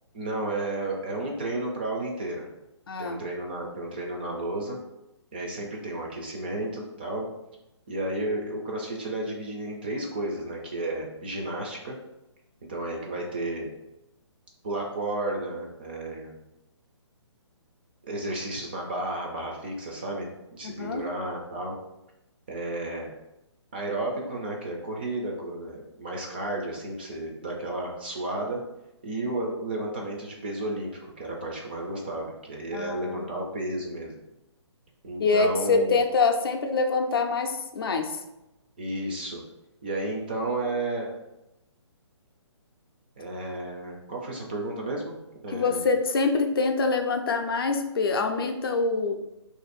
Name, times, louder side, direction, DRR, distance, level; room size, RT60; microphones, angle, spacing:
voice 1, 0.1-2.5 3.0-4.8 5.3-7.3 7.9-12.0 12.7-13.7 14.6-16.4 18.0-21.8 22.5-23.1 23.7-28.6 29.0-34.2 35.0-36.0 38.8-39.4 39.8-41.1 43.2-45.2 45.4-45.9, right 2 dB, 20° right, -1 dB, 0.3 m, -32 dB
voice 2, 2.9-3.2 20.6-21.0 32.7-33.3 35.2-38.2 45.5-49.1, left 4 dB, 50° left, 5 dB, 0.4 m, -25 dB
2.6 x 2.4 x 4.1 m, 0.91 s
hypercardioid pair, 165°, 15 cm